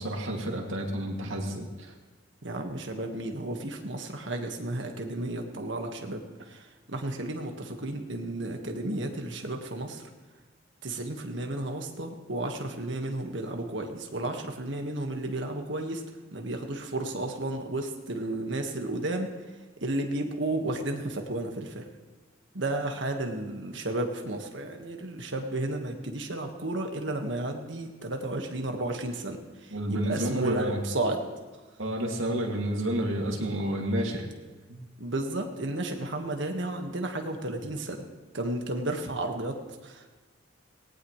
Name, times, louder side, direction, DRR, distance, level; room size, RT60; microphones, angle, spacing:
voice 1, 0.0-1.9 29.7-30.8 31.8-34.3 34.7-34.8, right 1 dB, 85° right, 0 dB, 2.5 m, -30 dB
voice 2, 2.4-10.1 10.8-16.0 16.3-19.3 19.8-21.9 22.5-31.3 35.0-38.0 38.3-40.1, right 2 dB, 65° right, 3 dB, 1.7 m, -33 dB
18.5 x 18.5 x 3.3 m, 1.2 s
head